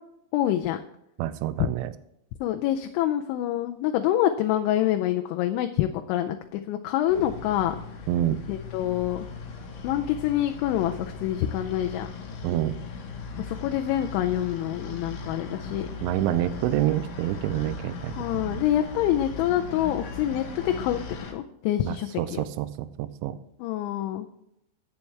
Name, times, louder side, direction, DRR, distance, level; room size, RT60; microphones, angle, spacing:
voice 1, 0.3-0.8 2.4-7.8 8.5-9.3 9.8-12.1 13.4-15.9 18.2-21.0 21.3-22.4 23.6-24.3, left 12 dB, 80° left, 5 dB, 2.9 m, -26 dB
voice 2, 1.2-1.9 8.1-8.4 12.4-12.8 16.0-18.6 21.8-23.3, right 13 dB, 85° right, 13 dB, 3.0 m, -27 dB
sound 1, 7.1-21.3, left 3 dB, 65° left, 2.3 m, -38 dB
11.5 x 8.4 x 3.3 m, 0.81 s
omnidirectional pair, 5.7 m